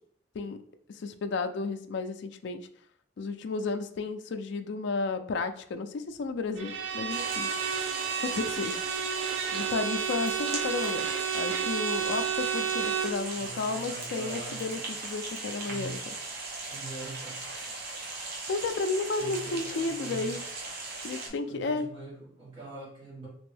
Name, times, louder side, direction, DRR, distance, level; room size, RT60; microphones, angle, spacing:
voice 1, 0.9-2.6 3.2-7.5 8.2-8.8 9.5-11.1 11.3-16.1 18.5-20.4 21.0-21.9, left 3 dB, 65° left, 8 dB, 0.4 m, -32 dB
Bowed string instrument, 6.6-13.2, right 7 dB, 80° right, 0.5 m, -31 dB
sound 1, 7.1-21.3, right 3 dB, 55° right, 0.8 m, -38 dB
voice 2, 13.3-14.9 15.6-16.0 16.6-17.7 19.2-20.4 21.1-23.3, right 3 dB, 30° right, -6 dB, 1.5 m, -43 dB
3.0 x 2.6 x 3.3 m, 0.62 s
head